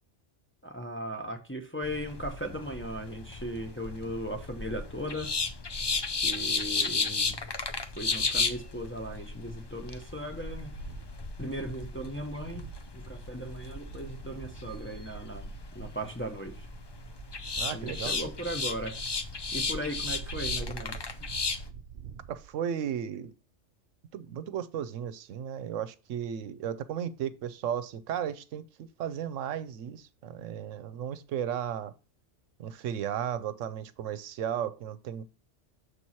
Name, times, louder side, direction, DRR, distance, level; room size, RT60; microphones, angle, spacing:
voice 1, 0.6-5.3 6.2-7.4 8.0-10.7 11.4-12.7 12.9-16.7 17.7-19.0 19.5-21.3, equal, 10° left, 0.7 m, -37 dB
sound 1, 1.8-21.7, left 4 dB, 40° left, 0.4 m, -34 dB
sound 2, 10.4-22.5, right 8 dB, 60° right, 0.8 m, -46 dB
voice 2, 17.6-18.2 22.3-23.3 24.1-28.6 29.0-31.9 32.6-35.2, right 9 dB, 85° right, 1.0 m, -34 dB
6.7 x 4.6 x 4.2 m
omnidirectional pair, 1.3 m